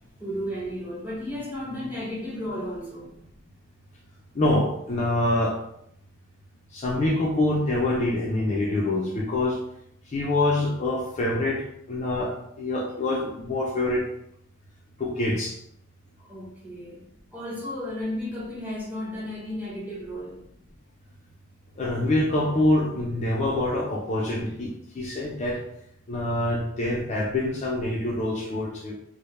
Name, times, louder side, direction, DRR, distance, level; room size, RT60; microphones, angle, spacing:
voice 1, 0.2-3.4 16.2-20.4, left 1 dB, 10° right, -5 dB, 0.6 m, -34 dB
voice 2, 4.3-5.6 6.7-9.6 10.1-11.6 11.9-14.0 15.0-15.6 21.8-25.6 26.1-28.9, left 1 dB, 35° left, -3 dB, 0.4 m, -25 dB
2.1 x 2.0 x 2.9 m, 0.74 s
head